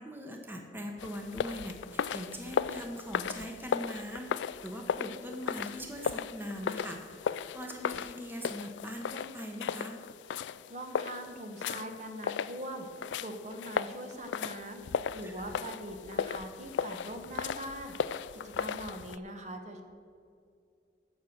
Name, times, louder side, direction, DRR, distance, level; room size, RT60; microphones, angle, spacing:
voice 1, 0.0-4.3 4.6-7.0 7.5-10.0 15.2-15.3, equal, 10° right, 2 dB, 1.0 m, -41 dB
sound 1, 1.0-19.2, left 7 dB, 85° left, 0.3 m, -36 dB
voice 2, 10.7-12.9 13.2-14.8 15.1-18.0 18.3-19.8, right 1 dB, 40° right, 5 dB, 1.2 m, -42 dB
15.5 x 6.3 x 6.6 m, 2.4 s
head